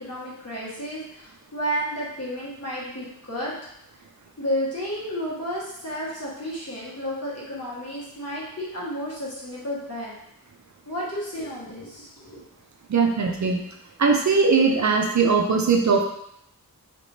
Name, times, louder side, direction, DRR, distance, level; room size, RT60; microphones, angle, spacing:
voice 1, 0.0-3.5 4.4-10.1 10.9-12.4, equal, 45° left, -7 dB, 1.4 m, -32 dB
voice 2, 12.9-13.6 14.0-16.1, right 4 dB, 55° right, 2 dB, 0.5 m, -20 dB
3.4 x 2.9 x 2.7 m, 0.75 s
wide cardioid pair, 65°, 35 cm